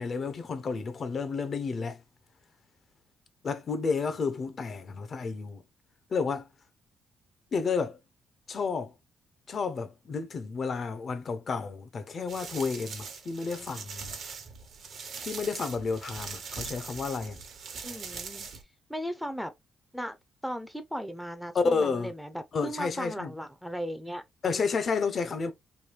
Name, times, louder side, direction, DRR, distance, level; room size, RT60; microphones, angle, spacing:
voice 1, 0.0-2.0 3.4-5.6 6.1-6.5 7.5-8.0 8.5-8.9 9.5-14.2 15.2-17.4 21.5-22.1 22.5-23.3 24.4-25.5, left 4 dB, 45° left, 0.6 m, -31 dB
sound 1, 12.3-18.6, right 5 dB, 60° right, 0.8 m, -41 dB
voice 2, 17.8-18.5 18.9-19.5 19.9-20.2 20.4-24.2, equal, ahead, 0.5 m, -36 dB
3.2 x 2.2 x 3.2 m
cardioid pair, 90°, 0 cm